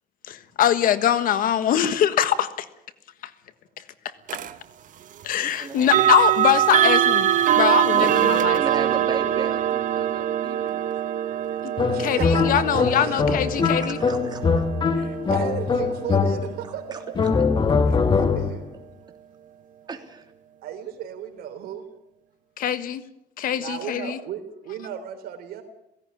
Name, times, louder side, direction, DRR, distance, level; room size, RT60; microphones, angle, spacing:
voice 1, 0.3-2.7 5.2-8.6 11.6-11.7 12.0-14.0 22.6-23.0 23.4-24.2, left 10 dB, 60° left, 12 dB, 1.5 m, -23 dB
sound 1, 4.3-4.5 5.8-16.7, right 11 dB, 55° right, 1.4 m, -23 dB
voice 2, 5.4-5.9 7.4-7.5 7.9-10.9 13.0-14.6 16.9-17.0 19.9-20.3, right 4 dB, 25° right, 4 dB, 3.2 m, -34 dB
voice 3, 11.2-13.2 14.9-17.2 17.9-18.6 20.6-21.9 23.6-25.6, right 9 dB, 75° right, 7 dB, 3.8 m, -35 dB
sound 2, 11.8-16.7 17.1-18.7, left 5 dB, 30° left, 1.7 m, -22 dB
17.0 x 16.5 x 9.8 m, 0.86 s
cardioid pair, 120°, 16 cm